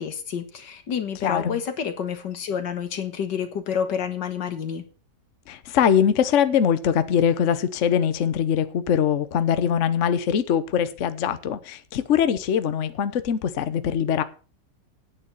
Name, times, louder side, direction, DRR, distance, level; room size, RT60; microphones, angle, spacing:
voice 1, 0.0-4.8, left 7 dB, 80° left, 2.2 m, -29 dB
voice 2, 1.2-1.6 5.5-14.2, left 8 dB, 50° left, 1.1 m, -22 dB
9.7 x 9.1 x 7.0 m
omnidirectional pair, 1.9 m